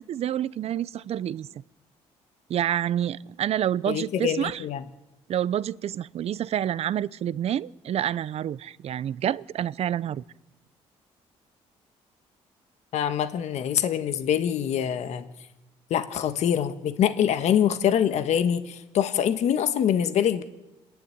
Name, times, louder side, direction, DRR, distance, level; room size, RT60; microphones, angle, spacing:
voice 1, 0.0-1.5 2.5-4.6 5.3-10.2, right 10 dB, 60° right, 19 dB, 0.7 m, -28 dB
voice 2, 3.9-4.8 12.9-15.3 15.9-20.4, left 9 dB, 70° left, 9 dB, 1.5 m, -24 dB
27.5 x 11.5 x 9.5 m, 0.99 s
cardioid pair, 85°, 12 cm